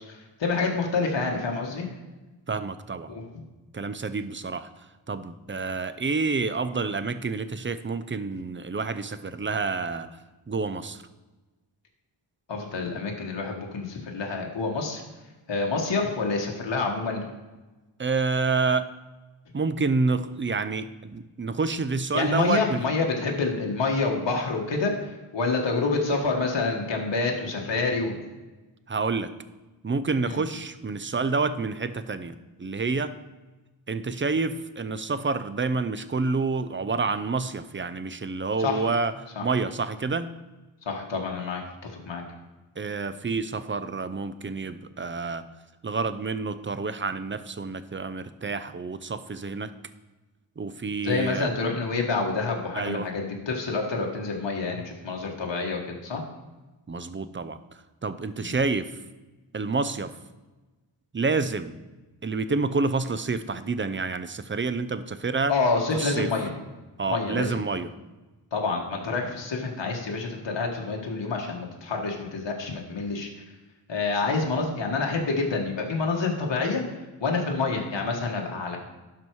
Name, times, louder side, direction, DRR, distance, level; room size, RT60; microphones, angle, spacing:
voice 1, 0.1-1.9 3.1-3.4 12.5-15.0 15.5-17.2 22.1-28.2 30.3-30.4 38.6-38.9 39.3-39.4 40.8-42.2 51.0-56.2 58.4-58.5 65.5-66.5 67.1-67.6 68.5-73.3 73.9-78.8, left 3 dB, 65° left, 0 dB, 1.6 m, -28 dB
voice 2, 2.5-3.1 3.7-4.7 5.1-10.1 10.5-11.0 18.0-18.9 19.5-22.8 28.9-29.3 29.8-33.1 33.9-39.1 39.4-40.3 42.8-45.4 45.8-49.7 50.6-51.5 52.7-53.1 56.9-57.6 58.0-58.9 59.5-60.1 61.1-61.8 62.2-65.5 65.9-66.3 67.0-67.9, right 4 dB, 25° right, 12 dB, 0.6 m, -28 dB
12.0 x 4.6 x 4.7 m, 1.2 s
cardioid pair, 60°, 47 cm